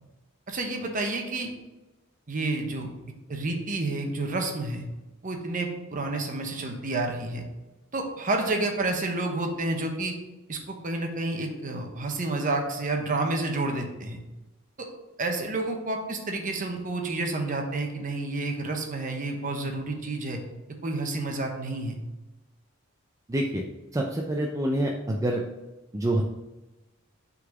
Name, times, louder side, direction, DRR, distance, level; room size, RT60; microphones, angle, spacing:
voice 1, 0.5-1.5 2.3-2.9 3.3-4.8 5.2-7.4 7.9-10.1 10.5-14.2 14.8-14.9 15.2-20.4 20.8-22.0, right 2 dB, 40° right, 3 dB, 0.9 m, -30 dB
voice 2, 23.3-23.6 23.9-25.4 25.9-26.2, right 1 dB, 15° right, 0 dB, 0.5 m, -26 dB
5.7 x 4.0 x 4.8 m, 1.1 s
head